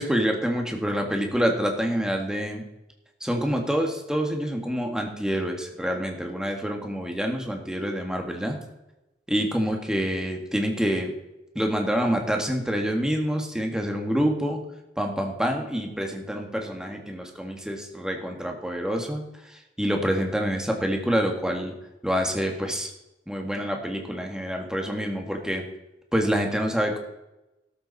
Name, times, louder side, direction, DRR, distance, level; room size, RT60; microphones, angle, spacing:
voice 1, 0.0-2.6 3.2-8.6 9.3-11.1 11.6-14.6 15.0-21.7 22.0-22.9 23.3-25.6 26.1-27.0, equal, 5° right, 2 dB, 1.9 m, -27 dB
13.0 x 13.0 x 4.2 m, 0.95 s
head